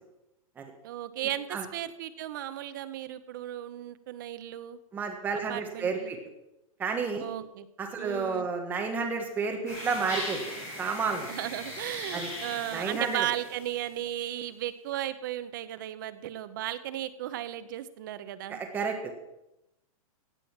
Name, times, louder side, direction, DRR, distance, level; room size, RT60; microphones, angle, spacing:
voice 1, 0.8-4.8 5.5-6.1 7.2-7.7 8.0-8.5 11.3-18.6, right 12 dB, 35° right, 13 dB, 0.8 m, -35 dB
voice 2, 4.9-6.2 6.8-7.2 7.8-10.4 10.8-11.3 12.1-12.3 12.7-13.2 18.5-19.1, right 5 dB, 10° right, 3 dB, 1.4 m, -31 dB
sound 1, 9.7-14.0, left 1 dB, 15° left, 5.3 m, -39 dB
16.0 x 8.8 x 6.0 m, 0.90 s
supercardioid pair, 180°, 18 cm